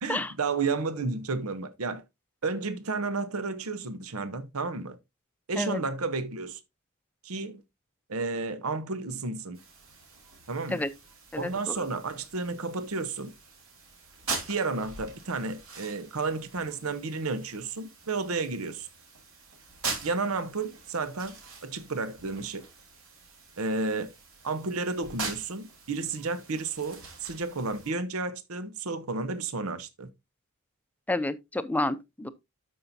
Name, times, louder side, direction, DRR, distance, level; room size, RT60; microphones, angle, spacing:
voice 1, 0.0-2.0 2.4-5.0 5.5-6.6 7.2-7.6 8.1-9.6 10.5-10.8 11.4-13.3 14.5-18.9 20.0-21.3 21.6-22.6 23.6-24.1 24.4-30.1, right 3 dB, 85° right, 0.9 m, -32 dB
sound 1, 9.5-27.9, right 4 dB, 70° right, 3.5 m, -43 dB
voice 2, 11.3-11.8 31.1-32.3, left 1 dB, 10° left, 0.6 m, -30 dB
13.0 x 5.6 x 2.7 m
head